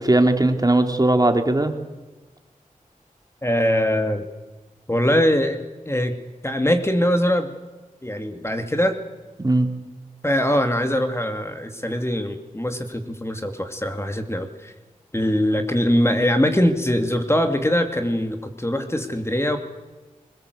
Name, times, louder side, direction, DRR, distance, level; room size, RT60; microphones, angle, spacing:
voice 1, 0.0-1.7 9.4-9.7, right 2 dB, 25° right, 6 dB, 2.8 m, -18 dB
voice 2, 3.4-4.2 4.9-5.6 5.9-6.1 6.4-7.6 8.0-9.0 10.2-14.7 15.1-19.6, equal, 20° left, 6 dB, 2.7 m, -22 dB
21.5 x 20.5 x 8.2 m, 1.2 s
cardioid pair, 40°, 14 cm